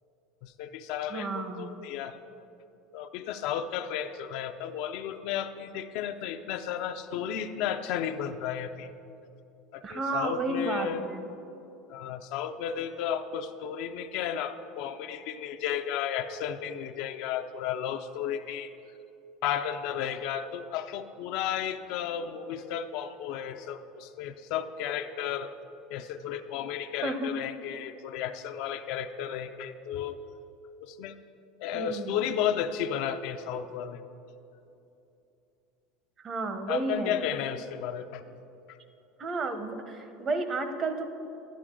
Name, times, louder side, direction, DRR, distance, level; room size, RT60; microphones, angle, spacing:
voice 1, 0.4-2.2 2.9-8.9 9.7-11.1 11.9-18.7 19.4-25.5 25.9-30.2 30.8-31.1 31.6-34.0 36.7-38.2 38.7-38.8, left 9 dB, 65° left, 8 dB, 0.5 m, -33 dB
voice 2, 1.1-1.7 9.8-11.2 27.0-27.3 31.7-32.2 36.2-37.2 39.2-41.0, right 3 dB, 35° right, 8 dB, 0.9 m, -32 dB
11.0 x 11.0 x 3.7 m, 2.8 s
supercardioid pair, 120°, 0 cm